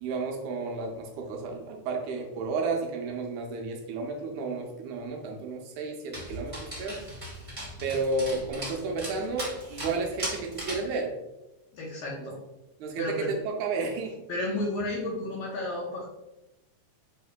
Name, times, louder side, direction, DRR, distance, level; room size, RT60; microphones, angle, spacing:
voice 1, 0.0-7.0 7.8-11.1 12.2-12.3 12.8-14.2, right 3 dB, 80° right, 1 dB, 1.9 m, -32 dB
Dog, 6.1-10.9, right 1 dB, 55° right, 0.3 m, -38 dB
voice 2, 11.7-12.4 13.0-13.3 14.3-16.1, left 1 dB, 70° left, -3 dB, 1.6 m, -32 dB
6.4 x 3.1 x 2.2 m, 0.98 s
omnidirectional pair, 3.5 m